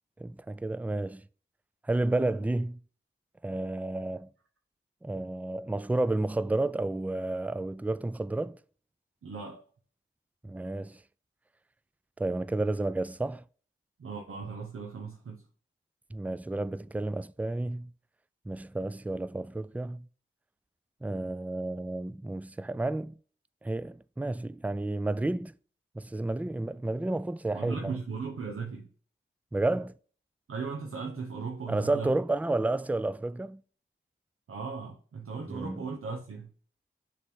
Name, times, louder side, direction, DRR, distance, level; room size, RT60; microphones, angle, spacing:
voice 1, 0.2-1.2 1.9-2.8 3.4-4.3 5.0-8.6 10.4-11.0 12.2-13.4 16.1-17.9 18.5-20.1 21.0-23.1 23.6-25.5 26.0-27.9 29.5-29.9 31.7-33.6 35.5-35.9, right 2 dB, 5° right, 0.4 m, -31 dB
voice 2, 9.2-9.6 14.0-15.4 27.5-28.9 30.5-32.1 34.5-36.5, right 5 dB, 90° right, 0.9 m, -37 dB
6.7 x 3.4 x 6.0 m
cardioid pair, 40°, 21 cm